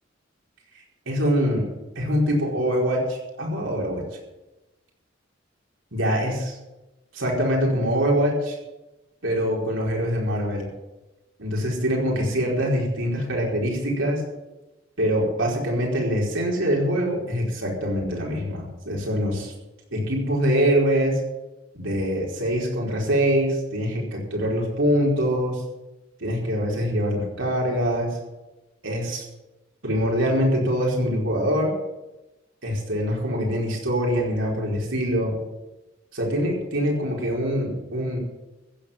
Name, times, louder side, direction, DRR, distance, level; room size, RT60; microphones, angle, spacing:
voice 1, 1.1-1.6 1.9-4.1 5.9-6.5 7.1-8.6 9.2-10.7 11.4-14.2 15.0-19.5 19.9-21.2 21.7-25.6 26.2-28.2 28.8-29.2 29.8-31.7 32.6-35.4 36.1-38.2, equal, 80° right, -2 dB, 4.7 m, -24 dB
15.0 x 8.0 x 8.8 m, 1.0 s
head